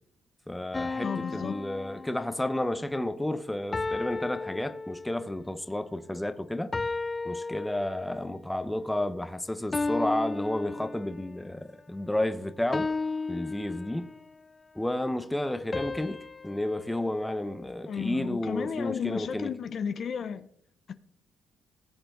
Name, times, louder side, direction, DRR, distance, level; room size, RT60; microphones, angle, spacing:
voice 1, 0.5-6.7 7.2-12.9 13.3-14.1 14.8-19.5, left 1 dB, 10° left, 0.9 m, -31 dB
sound 1, 0.7-2.7 3.7-5.4 6.7-8.3 9.7-11.4 12.7-14.3 15.7-18.1, left 3 dB, 25° left, 0.4 m, -35 dB
voice 2, 1.0-1.6 17.9-20.5 20.9-21.0, left 7 dB, 55° left, 0.8 m, -33 dB
18.5 x 7.7 x 3.9 m
cardioid pair, 90°, 0 cm